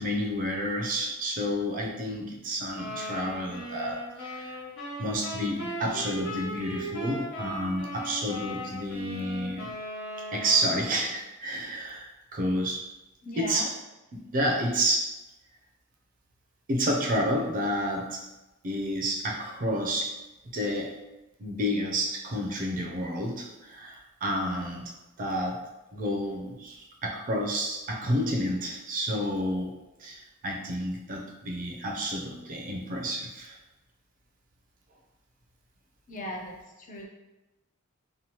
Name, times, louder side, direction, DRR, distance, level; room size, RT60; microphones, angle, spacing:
voice 1, 0.0-4.6 5.0-9.7 10.3-12.8 13.4-13.7 14.1-15.1 16.7-18.3 18.6-20.1 20.5-20.9 21.4-24.9 25.2-25.6 25.9-29.7 30.0-33.6, equal, 40° right, 0 dB, 0.4 m, -30 dB
sound 1, 2.7-11.1, equal, 65° left, 0.8 m, -38 dB
voice 2, 13.2-13.7 36.1-37.1, left 1 dB, 40° left, 0 dB, 0.5 m, -38 dB
2.9 x 2.1 x 2.8 m, 1.0 s
head